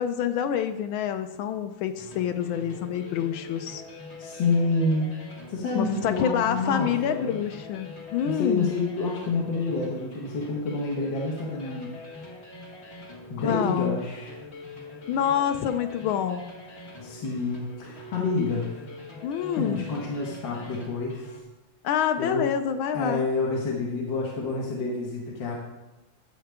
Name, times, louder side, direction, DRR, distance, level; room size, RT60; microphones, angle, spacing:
voice 1, 0.0-3.8 5.7-8.7 13.4-13.9 15.1-16.5 19.2-19.9 21.8-23.3, left 9 dB, 75° left, 9 dB, 1.3 m, -27 dB
sound 1, 2.0-21.4, left 2 dB, 35° left, 1.5 m, -43 dB
voice 2, 4.2-5.1 5.5-7.4 8.2-12.1 13.3-14.3 17.0-18.7 19.6-21.2 22.2-22.5 22.9-25.5, left 3 dB, 60° left, -3 dB, 2.0 m, -28 dB
11.5 x 7.9 x 3.5 m, 1.0 s
omnidirectional pair, 2.4 m